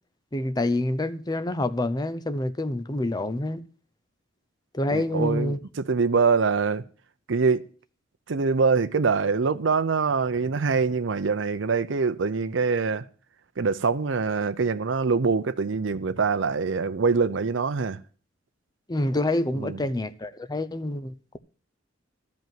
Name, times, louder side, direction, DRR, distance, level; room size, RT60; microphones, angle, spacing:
voice 1, 0.3-3.6 4.7-5.6 18.9-21.1, left 2 dB, 20° left, 0.7 m, -27 dB
voice 2, 4.9-6.8 7.3-7.6 8.3-13.0 13.6-18.0 19.6-19.8, right 5 dB, 75° right, 0.6 m, -24 dB
13.0 x 5.3 x 9.2 m
head